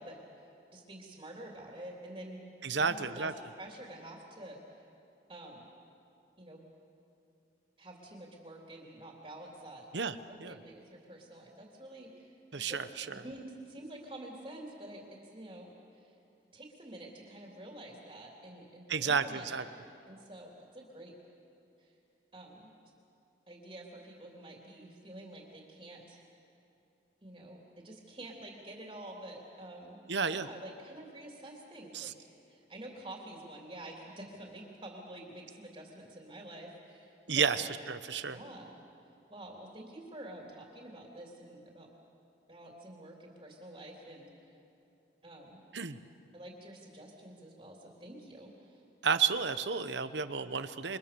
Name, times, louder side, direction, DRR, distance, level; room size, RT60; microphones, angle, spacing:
voice 1, 0.0-2.4 2.8-3.3 3.6-4.8 5.3-5.7 6.4-6.7 7.8-9.9 10.3-12.8 13.1-16.1 16.5-19.6 20.1-21.1 21.8-21.9 22.3-22.7 23.5-26.2 27.2-30.0 30.3-32.1 32.5-37.6 38.2-38.7 39.3-41.9 42.5-44.6 45.2-45.6 46.3-48.8, right 1 dB, 25° right, -1 dB, 3.3 m, -48 dB
voice 2, 2.6-3.3 9.9-10.5 12.5-13.2 18.9-19.6 30.1-30.5 31.9-32.1 37.3-38.4 45.7-46.0 49.0-51.0, right 6 dB, 70° right, 11 dB, 1.0 m, -32 dB
28.5 x 24.5 x 6.9 m, 2.7 s
head